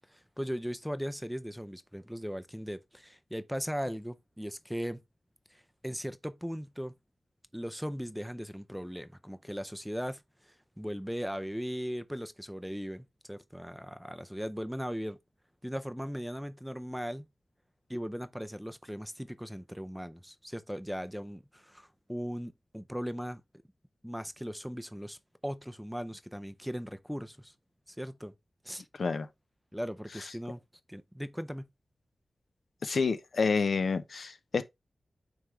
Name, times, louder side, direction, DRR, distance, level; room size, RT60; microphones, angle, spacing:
voice 1, 0.1-5.0 5.5-6.9 7.5-15.2 15.6-17.2 17.9-23.4 24.0-27.5 27.9-28.3 28.6-28.9 29.7-30.6 30.9-31.7, equal, ahead, 0.5 m, -38 dB
voice 2, 32.8-34.6, left 5 dB, 70° left, 0.7 m, -28 dB
9.3 x 3.5 x 3.2 m
wide cardioid pair, 110°, 0 cm